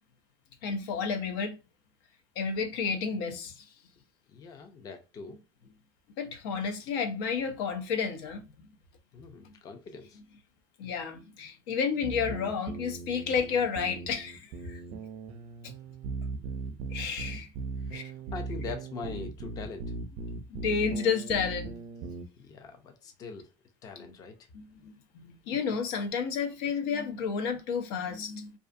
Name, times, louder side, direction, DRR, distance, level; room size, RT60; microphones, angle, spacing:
voice 1, 0.6-1.6 2.4-3.7 6.2-8.4 9.4-9.5 10.8-14.8 16.9-17.5 17.9-18.1 20.5-21.7 24.5-28.5, left 6 dB, 85° left, 0.6 m, -31 dB
voice 2, 4.3-5.7 9.1-10.2 14.6-14.7 17.8-19.9 22.4-23.5 23.8-24.4 24.8-24.9, left 4 dB, 30° left, 0.4 m, -43 dB
sound 1, 12.0-22.2, right 4 dB, 50° right, 0.4 m, -39 dB
2.4 x 2.4 x 2.5 m
cardioid pair, 145°, 12 cm